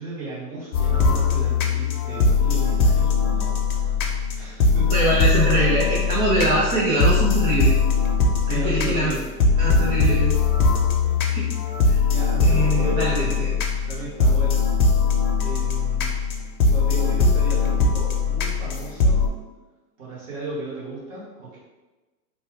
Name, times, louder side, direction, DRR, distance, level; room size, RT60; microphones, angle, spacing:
voice 1, 0.0-4.1 4.3-4.9 8.4-9.3 11.1-11.2 12.1-13.0 13.8-14.7 15.4-16.1 16.7-19.2 20.0-21.6, right 2 dB, 30° right, -7 dB, 1.2 m, -35 dB
sound 1, 0.7-19.3, left 4 dB, 65° left, 0.7 m, -20 dB
voice 2, 4.9-7.7 8.5-9.1 9.6-10.3 11.3-11.5 11.8-12.0 12.4-13.5, right 1 dB, 50° right, -7 dB, 0.9 m, -23 dB
3.1 x 2.2 x 3.2 m, 1.2 s
hypercardioid pair, 150°, 49 cm